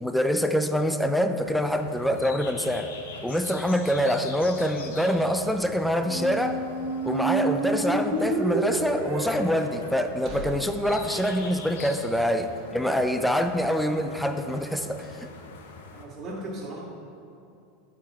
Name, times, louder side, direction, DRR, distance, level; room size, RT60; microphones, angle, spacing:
voice 1, 0.0-2.9 3.2-6.6 7.0-15.3, equal, ahead, 7 dB, 0.5 m, -25 dB
sound 1, 1.4-16.1, left 4 dB, 85° left, 0.9 m, -44 dB
Squeak, 6.0-11.9, right 3 dB, 45° right, 1.4 m, -30 dB
voice 2, 12.7-13.0 15.9-16.8, right 1 dB, 30° right, -9 dB, 2.0 m, -38 dB
11.0 x 4.9 x 4.2 m, 2.7 s
supercardioid pair, 115°, 0 cm